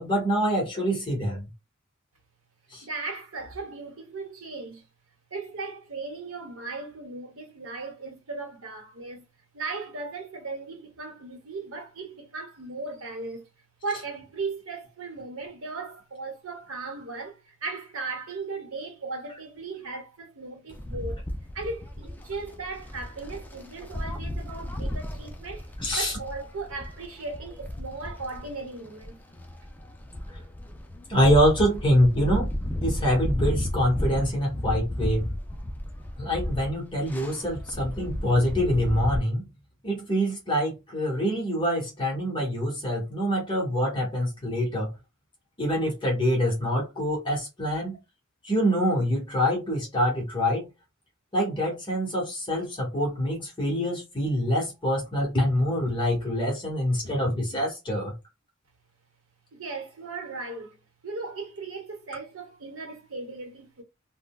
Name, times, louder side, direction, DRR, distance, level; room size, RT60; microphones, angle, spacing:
voice 1, 0.0-1.5 2.7-2.9 25.8-26.2 31.1-32.5 32.8-35.3 36.2-39.4 39.8-44.9 45.6-48.0 48.4-50.7 51.3-58.1, equal, 25° left, 1.1 m, -25 dB
voice 2, 2.8-4.8 5.3-9.2 9.5-13.5 13.8-21.2 21.5-25.7 25.9-29.2 59.5-60.8 61.0-63.8, right 3 dB, 80° right, 1.0 m, -37 dB
sound 1, 20.7-39.2, left 1 dB, 10° left, 0.4 m, -33 dB
3.7 x 2.2 x 2.3 m
head